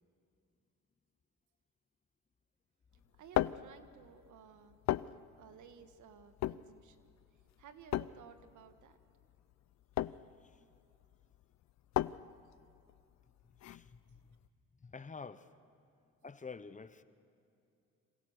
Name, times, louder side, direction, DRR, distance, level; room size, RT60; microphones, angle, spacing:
sound 1, 2.9-14.5, left 13 dB, 65° left, 0.5 m, -39 dB
voice 1, 3.1-4.8 5.4-7.1 7.6-9.0, right 8 dB, 75° right, 1.7 m, -56 dB
voice 2, 10.4-10.7 13.6-14.4 14.8-15.5 16.2-17.0, left 5 dB, 25° left, 1.0 m, -49 dB
27.5 x 26.5 x 6.7 m
cardioid pair, 90°, 30 cm